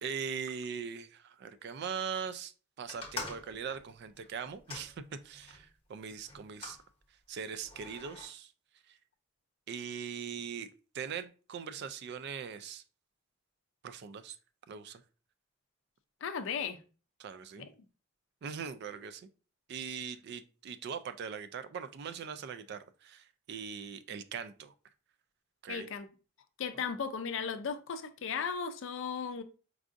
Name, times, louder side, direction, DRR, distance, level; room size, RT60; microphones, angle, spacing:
voice 1, 0.0-2.5 2.8-6.8 7.3-8.5 8.9-9.0 9.7-12.8 13.8-14.4 14.7-15.0 17.2-17.7 18.4-19.3 19.7-24.7 25.6-25.9, right 6 dB, 55° right, 0.3 m, -41 dB
sound 1, 2.9-5.6 6.3-6.8 7.6-8.3, left 3 dB, 25° left, 0.9 m, -45 dB
voice 2, 16.2-16.8 17.6-17.7 25.7-26.1 26.6-29.4, left 6 dB, 60° left, 0.4 m, -36 dB
4.6 x 2.5 x 2.5 m
head